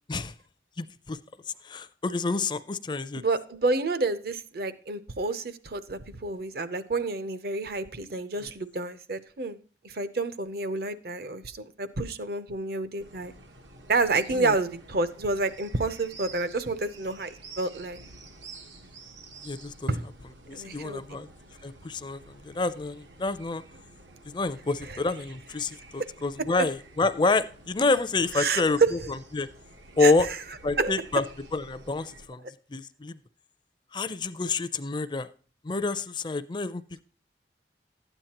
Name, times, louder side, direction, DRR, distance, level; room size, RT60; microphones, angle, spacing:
voice 1, 0.8-1.2 1.6-3.2 14.3-14.5 19.4-19.7 20.5-21.3 21.6-23.6 24.3-28.8 29.3-29.5 30.0-30.3 30.6-31.2 31.5-32.4 32.7-33.2 33.9-35.3 35.6-37.0, left 3 dB, 25° left, 13 dB, 0.4 m, -28 dB
voice 2, 3.2-9.6 9.8-13.3 13.9-18.0 19.9-20.0 20.5-21.0 24.8-25.0 28.3-29.0 30.0-30.4 30.8-31.0, right 3 dB, 55° right, 13 dB, 0.7 m, -29 dB
sound 1, 13.0-32.3, right 3 dB, 85° right, 1.4 m, -50 dB
12.5 x 9.0 x 2.9 m, 0.41 s
head